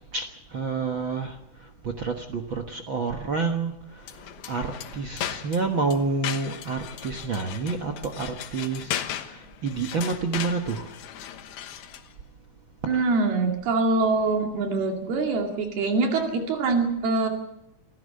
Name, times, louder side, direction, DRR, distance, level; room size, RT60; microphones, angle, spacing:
voice 1, 0.1-10.9 12.9-13.1, right 4 dB, 60° right, 6 dB, 1.2 m, -29 dB
sound 1, 4.0-12.1, left 10 dB, 85° left, 3.1 m, -37 dB
voice 2, 12.9-17.3, right 3 dB, 90° right, 2 dB, 4.4 m, -24 dB
26.5 x 15.0 x 6.6 m, 0.83 s
omnidirectional pair, 4.3 m